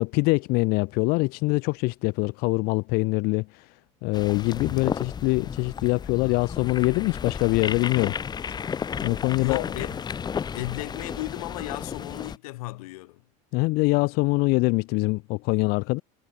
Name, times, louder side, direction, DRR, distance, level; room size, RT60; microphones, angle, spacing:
voice 1, 0.0-3.7 4.0-8.1 9.0-9.6 13.5-16.0, left 26 dB, 55° left, 1.2 m, -24 dB
sound 1, 4.1-12.4, left 7 dB, 25° left, 5.6 m, -33 dB
voice 2, 9.4-10.0 10.5-13.2, left 20 dB, 90° left, 5.9 m, -34 dB
cardioid pair, 145°, 18 cm